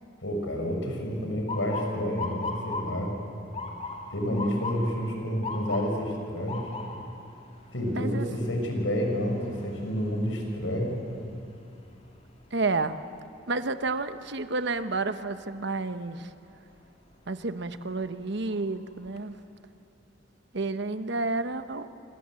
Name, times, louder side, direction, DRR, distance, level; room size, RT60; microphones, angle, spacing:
voice 1, 0.2-3.1 4.1-6.7 7.7-11.0, equal, 85° left, 2 dB, 6.1 m, -29 dB
Motor vehicle (road) / Siren, 1.5-13.4 13.8-14.3 15.0-15.4 17.2-17.5 18.0-18.1 18.5-19.2, left 3 dB, 35° left, 3.0 m, -39 dB
voice 2, 7.9-8.3 12.5-13.0 13.5-16.3 17.3-19.3 20.5-21.9, right 3 dB, 65° right, 10 dB, 1.1 m, -30 dB
27.0 x 26.0 x 7.7 m, 2.6 s
head